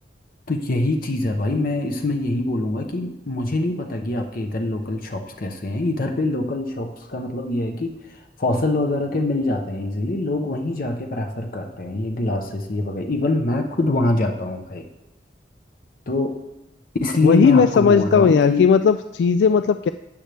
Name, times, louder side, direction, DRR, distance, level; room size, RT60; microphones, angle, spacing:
voice 1, 0.5-7.9 8.4-14.9 16.1-16.3 17.0-18.6, left 2 dB, 55° left, 4 dB, 0.8 m, -24 dB
voice 2, 17.2-19.9, left 6 dB, 75° left, 11 dB, 0.3 m, -16 dB
13.0 x 9.0 x 3.4 m, 0.94 s
head